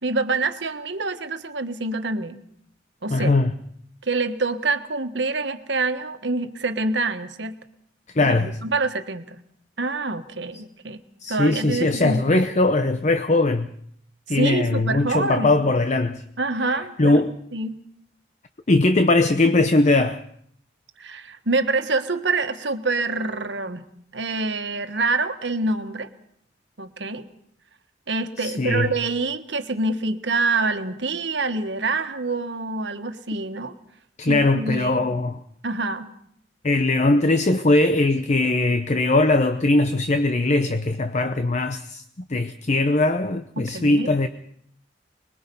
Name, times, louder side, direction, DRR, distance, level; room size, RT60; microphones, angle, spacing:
voice 1, 0.0-2.4 3.0-3.4 4.0-7.6 8.2-9.4 9.8-11.0 11.3-12.4 14.3-15.6 16.4-17.2 17.5-17.8 21.0-23.8 24.1-26.1 26.8-27.3 28.1-33.7 34.3-35.0 35.6-36.1 43.6-44.1, right 3 dB, 80° right, 1.5 m, -26 dB
voice 2, 3.1-3.5 8.1-8.6 11.2-13.7 14.3-16.2 16.7-17.3 18.7-20.2 28.4-28.9 34.2-35.4 36.6-42.0 42.3-44.3, left 2 dB, 40° left, 0.8 m, -20 dB
25.0 x 21.0 x 5.5 m
head